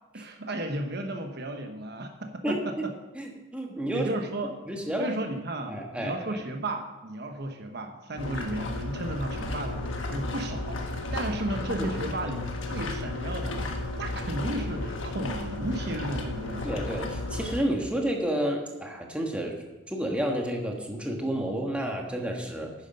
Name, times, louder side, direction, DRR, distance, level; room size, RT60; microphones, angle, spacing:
voice 1, 0.1-2.9 3.9-4.5 5.0-10.8 11.1-13.6 14.0-16.7, right 1 dB, 50° right, 5 dB, 1.0 m, -34 dB
voice 2, 2.4-2.9 3.1-4.1 4.7-5.1 5.7-6.4 16.6-19.6 19.9-22.7, right 1 dB, 5° right, 1 dB, 1.3 m, -30 dB
sound 1, 8.2-17.6, left 2 dB, 65° left, 1.4 m, -33 dB
10.5 x 9.7 x 5.5 m, 1.1 s
head